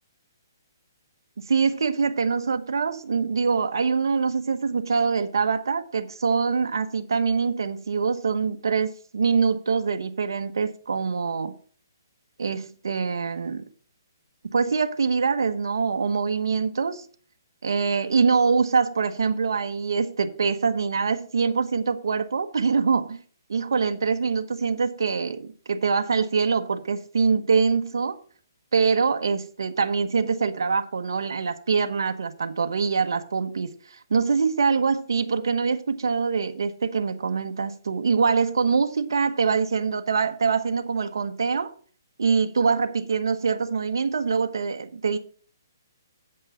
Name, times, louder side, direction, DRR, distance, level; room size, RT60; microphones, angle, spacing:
voice 1, 1.4-11.5 12.4-13.6 14.4-17.0 17.6-23.2 23.5-28.2 28.7-41.7 42.2-45.2, right 5 dB, 80° right, 1.1 m, -24 dB
8.3 x 5.5 x 7.0 m
hypercardioid pair, 155°, 2 cm